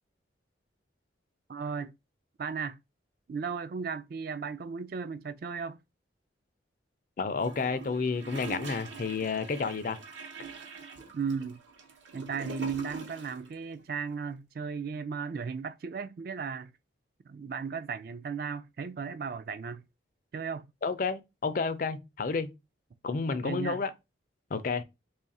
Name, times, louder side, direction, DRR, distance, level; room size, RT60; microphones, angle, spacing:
voice 1, 1.5-1.9 2.4-2.8 3.3-5.8 11.1-11.6 12.1-16.7 17.3-19.8 20.3-20.7 23.3-23.8, right 5 dB, 50° right, 0.3 m, -35 dB
voice 2, 7.2-10.0 20.8-22.5 23.0-23.9 24.5-24.8, left 4 dB, 45° left, 0.4 m, -30 dB
Gurgling / Toilet flush, 7.4-13.5 13.7-13.8, right 5 dB, 80° right, 0.9 m, -43 dB
3.1 x 2.4 x 4.1 m
head